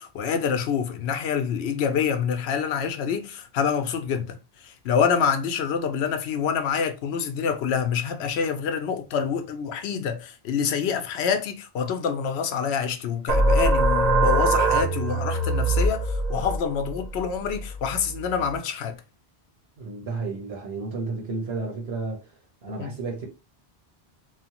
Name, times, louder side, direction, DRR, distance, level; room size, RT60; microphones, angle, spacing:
voice 1, 0.0-19.0 22.8-22.9, left 7 dB, 80° left, 0.8 m, -26 dB
sound 1, 13.3-18.6, right 2 dB, 50° right, 0.5 m, -23 dB
voice 2, 19.8-22.3 22.6-23.3, right 3 dB, 70° right, 1.3 m, -32 dB
3.1 x 2.1 x 2.8 m
omnidirectional pair, 1.1 m